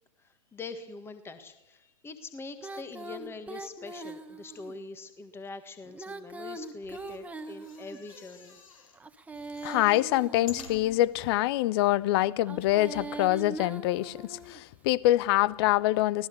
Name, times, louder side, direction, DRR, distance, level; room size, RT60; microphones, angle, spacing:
voice 1, 0.2-8.6, left 3 dB, 15° left, 1.6 m, -43 dB
Female singing, 2.6-4.7 5.9-8.2 9.0-11.1 12.4-14.6, right 2 dB, 10° right, 1.4 m, -41 dB
sound 1, 6.7-9.0 9.3-11.3 11.9-12.0 12.2-12.3, left 5 dB, 70° left, 4.5 m, -49 dB
voice 2, 9.6-16.3, left 16 dB, 45° left, 0.9 m, -25 dB
25.0 x 17.5 x 6.9 m
hypercardioid pair, 110°, 18 cm